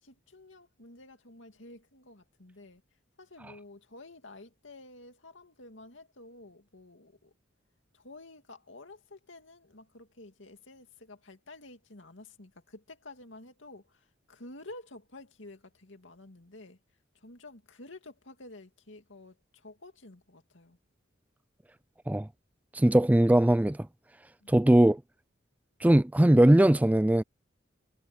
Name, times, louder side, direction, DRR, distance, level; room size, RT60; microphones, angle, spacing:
voice 1, 0.0-2.8 3.2-7.3 7.9-16.8 17.1-20.8 24.4-24.6, left 2 dB, 70° left, 2.5 m, -50 dB
voice 2, 22.7-23.8 24.5-25.0 25.8-27.2, right 1 dB, 10° right, 0.3 m, -20 dB
head